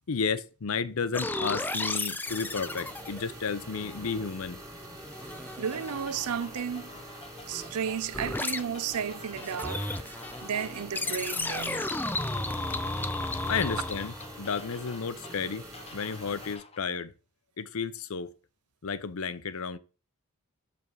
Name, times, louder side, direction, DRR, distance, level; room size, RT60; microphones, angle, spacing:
voice 1, 0.1-4.6 13.5-15.7 15.9-17.1 17.6-18.3 18.8-19.8, left 5 dB, 70° left, 0.6 m, -32 dB
sound 1, 1.1-4.4 4.7-6.2 8.1-8.6 9.3-14.5, left 2 dB, 10° left, 0.4 m, -34 dB
sound 2, 2.2-16.6, right 1 dB, 15° right, 1.4 m, -45 dB
voice 2, 5.6-7.0 7.5-11.9, right 7 dB, 90° right, 0.5 m, -33 dB
sound 3, 5.7-16.8, left 3 dB, 25° left, 0.9 m, -49 dB
6.9 x 5.1 x 4.7 m
head